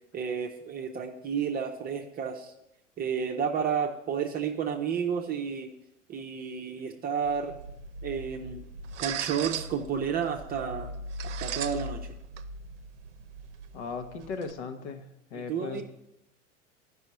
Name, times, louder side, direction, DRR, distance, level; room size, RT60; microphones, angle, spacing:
voice 1, 0.1-2.5 3.0-5.7 6.1-7.6 8.0-8.7 9.0-10.9 11.2-12.1 15.3-15.8, right 7 dB, 25° right, 2 dB, 0.7 m, -31 dB
sound 1, 7.2-14.5, right 4 dB, 65° right, 0.7 m, -39 dB
voice 2, 13.7-15.0 15.3-15.8, left 4 dB, 60° left, 8 dB, 1.2 m, -37 dB
15.0 x 5.4 x 3.0 m, 0.85 s
figure-of-eight pair, 85°, 39 cm